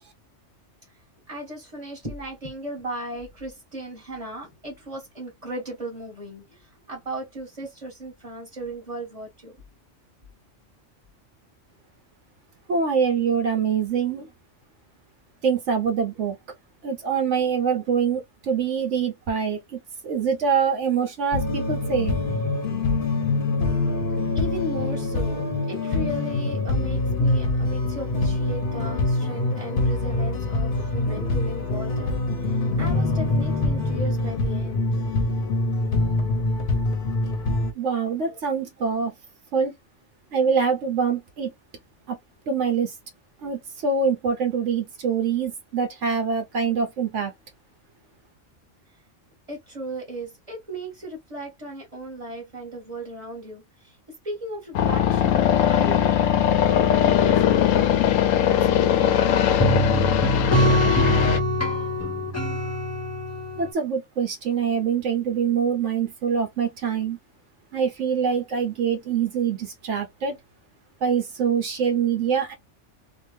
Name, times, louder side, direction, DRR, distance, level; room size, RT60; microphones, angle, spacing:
voice 1, 1.3-9.6 13.9-14.0 24.1-34.9 38.2-38.4 49.5-54.0 54.2-59.2, right 1 dB, 30° right, 1.4 m, -36 dB
voice 2, 12.7-14.3 15.4-16.4 16.8-22.2 37.7-39.1 39.5-39.7 40.3-41.5 42.1-42.2 42.5-42.9 43.4-47.3 63.6-67.2 67.7-70.4 71.0-72.5, right 6 dB, 70° right, 1.0 m, -24 dB
sound 1, 21.3-37.7, left 2 dB, 50° left, 0.7 m, -24 dB
sound 2, 54.7-61.4, left 10 dB, 90° left, 1.0 m, -20 dB
sound 3, 59.6-63.7, right 1 dB, 15° left, 0.6 m, -24 dB
2.9 x 2.2 x 3.3 m
omnidirectional pair, 1.3 m